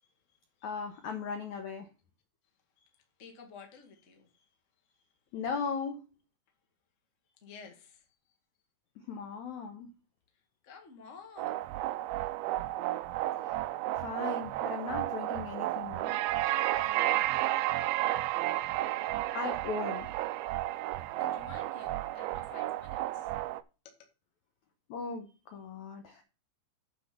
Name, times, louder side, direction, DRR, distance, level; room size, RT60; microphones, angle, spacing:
voice 1, 0.0-0.7 2.8-4.5 4.8-5.2 7.4-8.1 10.3-11.7 16.8-17.3 19.1-19.2 20.3-23.3 23.8-24.1, left 5 dB, 35° left, 1.3 m, -54 dB
voice 2, 0.6-1.9 5.3-6.0 9.1-9.9 13.4-13.7 13.9-16.2 19.3-20.1 24.9-26.2, left 5 dB, 70° left, 1.8 m, -38 dB
sound 1, 11.4-23.6, right 15 dB, 80° right, 2.2 m, -32 dB
8.9 x 5.5 x 5.9 m
omnidirectional pair, 4.7 m